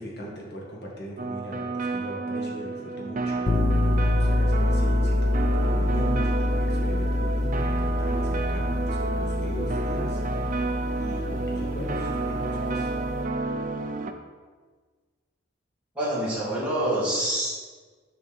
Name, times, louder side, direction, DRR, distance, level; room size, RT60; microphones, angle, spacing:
voice 1, 0.0-3.4 4.1-7.6 8.0-10.2 11.0-12.9, equal, 55° left, -3 dB, 1.6 m, -38 dB
sound 1, 1.2-14.1, right 3 dB, 40° right, 0.4 m, -30 dB
sound 2, 3.5-13.3, left 1 dB, 35° left, 0.4 m, -26 dB
voice 2, 16.0-17.5, right 1 dB, 5° right, -9 dB, 2.1 m, -26 dB
6.6 x 5.3 x 4.2 m, 1.4 s
head